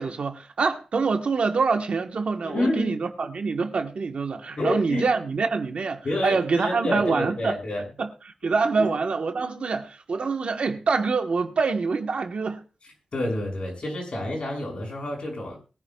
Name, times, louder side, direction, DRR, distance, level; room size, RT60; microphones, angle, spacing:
voice 1, 0.0-7.5 8.0-8.1 8.4-12.6, right 4 dB, 75° right, 1.3 m, -25 dB
voice 2, 2.4-2.9 4.6-5.0 6.0-7.8 8.8-8.9 13.1-15.6, left 1 dB, 65° left, 6.3 m, -28 dB
21.5 x 10.0 x 2.4 m
wide cardioid pair, 110°, 2 cm